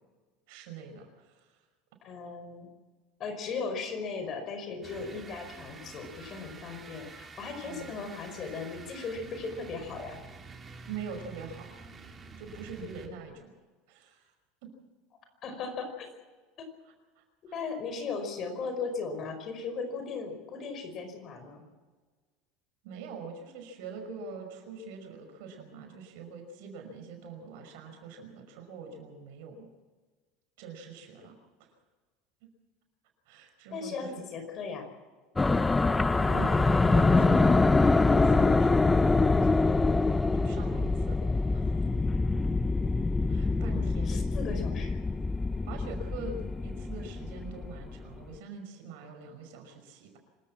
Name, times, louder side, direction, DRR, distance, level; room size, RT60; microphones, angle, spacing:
voice 1, 0.5-1.5 7.6-8.0 10.9-11.7 12.4-13.5 13.9-14.3 14.6-14.7 17.2-17.6 22.8-29.7 30.6-31.3 31.6-31.7 33.3-34.2 36.2-39.0 39.4-39.6 40.3-41.2 41.5-41.9 43.3-44.3 45.6-50.2, right 5 dB, 75° right, 5 dB, 5.6 m, -44 dB
voice 2, 2.0-2.7 3.2-10.2 15.4-16.1 16.6-16.7 17.5-21.6 33.7-34.9 43.6-45.0, left 4 dB, 45° left, 7 dB, 5.2 m, -37 dB
sound 1, 4.8-13.3, right 4 dB, 25° right, 3.7 m, -48 dB
sound 2, 35.4-47.9, left 3 dB, 15° left, 0.7 m, -25 dB
26.0 x 14.0 x 7.4 m, 1.4 s
hypercardioid pair, 95°, 0 cm